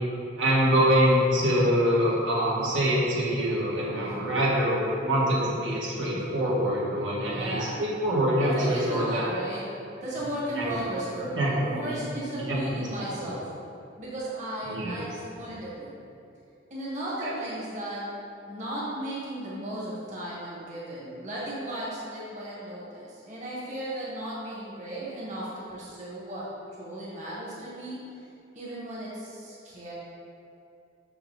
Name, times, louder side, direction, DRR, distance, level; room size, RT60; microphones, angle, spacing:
voice 1, 0.4-9.2 10.6-10.8 11.4-11.5 11.8-11.9 12.4-12.6 13.2-13.3 14.6-15.0 17.2-17.3, equal, 75° right, -6 dB, 1.6 m, -25 dB
voice 2, 4.0-4.3 7.3-7.8 8.4-13.5 14.0-16.0 16.7-18.1 18.5-26.5 26.8-28.3 28.5-29.9, right 1 dB, 40° right, -7 dB, 1.6 m, -35 dB
6.3 x 5.6 x 3.9 m, 2.6 s
head